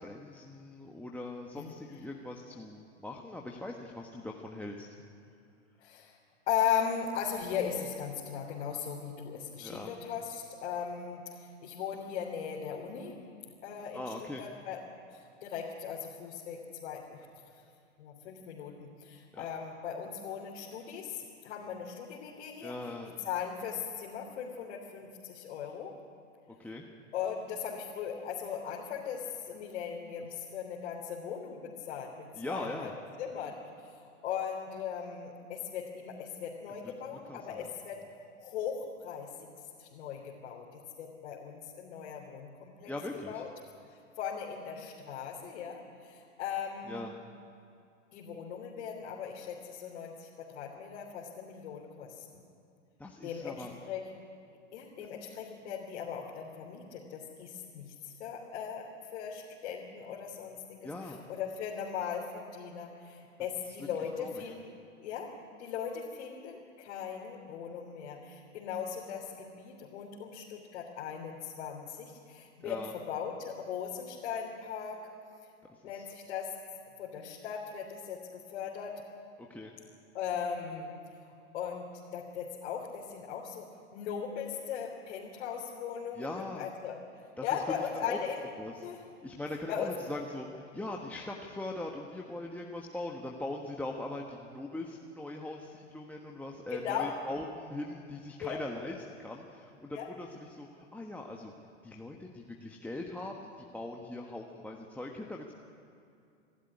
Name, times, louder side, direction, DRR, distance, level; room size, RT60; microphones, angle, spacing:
voice 1, 0.0-4.9 9.6-9.9 13.9-14.4 19.3-19.4 22.6-23.1 26.6-26.8 32.4-33.0 37.1-37.7 42.9-43.4 46.9-47.1 53.0-53.7 60.8-61.2 64.2-64.4 72.6-72.9 75.7-76.1 79.4-79.7 86.1-86.7 87.4-87.6 88.0-88.2 88.6-88.9 89.2-101.5 101.8-105.5, left 2 dB, 5° left, -1 dB, 1.3 m, -41 dB
voice 2, 5.8-6.2 6.5-13.2 13.6-14.8 15.1-17.2 18.0-22.7 23.2-25.9 27.1-32.9 33.2-38.0 38.4-39.3 39.8-42.9 43.3-43.5 44.2-47.0 48.1-52.2 53.2-54.0 54.7-64.6 65.0-65.3 65.6-75.0 75.8-76.5 77.0-79.0 80.1-81.9 82.1-87.0 87.4-88.4 88.8-89.0 89.7-89.9 96.7-97.1 98.4-98.6 99.9-100.1, left 8 dB, 65° left, -3 dB, 3.4 m, -38 dB
26.0 x 12.5 x 9.8 m, 2.5 s
hypercardioid pair, 115°, 38 cm